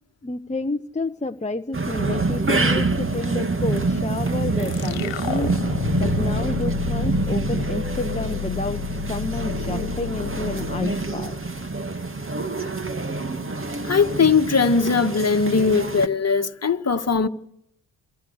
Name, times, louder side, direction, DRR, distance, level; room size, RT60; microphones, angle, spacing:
voice 1, 0.2-5.6 6.0-11.3, left 2 dB, 15° left, 1.1 m, -30 dB
sound 1, 1.7-16.1, right 3 dB, 25° right, 2.1 m, -26 dB
sound 2, 4.6-11.9, left 13 dB, 80° left, 1.2 m, -31 dB
voice 2, 13.9-17.3, left 5 dB, 35° left, 1.8 m, -20 dB
27.5 x 25.5 x 6.7 m
hypercardioid pair, 45°, 46 cm